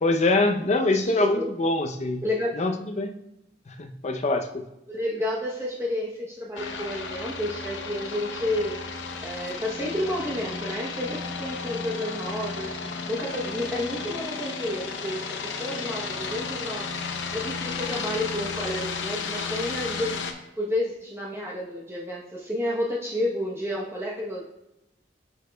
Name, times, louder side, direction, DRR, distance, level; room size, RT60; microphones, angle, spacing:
voice 1, 0.0-2.2 2.6-3.1 3.7-4.6, left 2 dB, 40° left, 6 dB, 0.6 m, -24 dB
voice 2, 1.2-1.5 2.2-2.5 4.9-8.8 9.2-17.0 17.3-20.2 20.6-24.5, left 1 dB, 15° right, -4 dB, 0.8 m, -30 dB
sound 1, 6.6-20.3, left 4 dB, 90° left, 0.7 m, -33 dB
8.0 x 6.4 x 2.2 m, 0.91 s
head